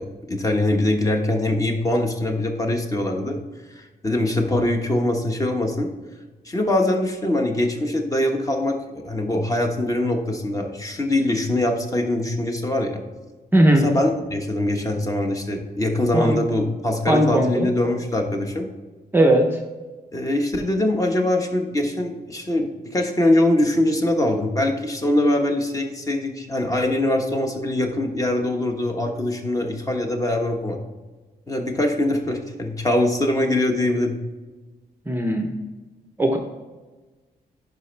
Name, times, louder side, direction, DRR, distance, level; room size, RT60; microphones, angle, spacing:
voice 1, 0.0-3.4 3.7-5.9 6.4-13.0 13.7-18.7 20.1-30.8 31.5-34.1, left 1 dB, 20° left, 3 dB, 1.2 m, -23 dB
voice 2, 13.5-13.8 16.1-16.4 17.1-17.7 19.1-19.6 35.1-35.5 36.2-36.4, right 1 dB, 15° right, 3 dB, 0.7 m, -18 dB
11.0 x 5.2 x 3.3 m, 1.2 s
wide cardioid pair, 140°, 17 cm